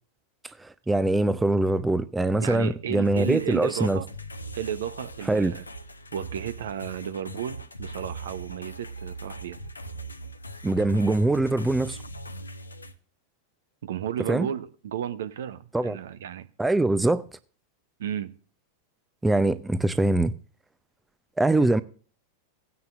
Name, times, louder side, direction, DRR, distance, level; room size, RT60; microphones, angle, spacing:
voice 1, 0.6-4.0 5.3-5.5 10.6-12.0 14.3-14.5 15.7-16.0 16.6-17.2 19.2-20.3 21.4-21.8, right 2 dB, 10° right, 0.6 m, -23 dB
voice 2, 2.4-4.1 4.5-5.6 6.1-9.6 13.8-16.5 18.0-18.4, right 10 dB, 60° right, 0.9 m, -33 dB
sound 1, 3.0-12.9, right 1 dB, 80° left, 0.9 m, -40 dB
18.0 x 9.4 x 2.5 m
figure-of-eight pair, 90°, 0 cm